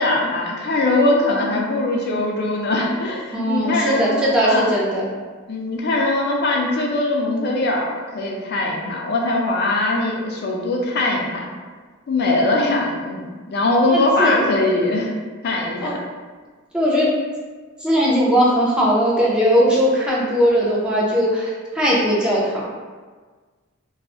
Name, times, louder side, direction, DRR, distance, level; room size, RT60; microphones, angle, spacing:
voice 1, 0.0-4.7 5.5-11.5 12.1-15.1 15.4-15.9, left 2 dB, 55° left, -1 dB, 0.4 m, -21 dB
voice 2, 3.3-5.0 13.9-14.4 15.8-16.0 16.7-17.1 17.8-22.6, equal, 5° right, -7 dB, 0.5 m, -19 dB
2.3 x 2.0 x 3.5 m, 1.4 s
head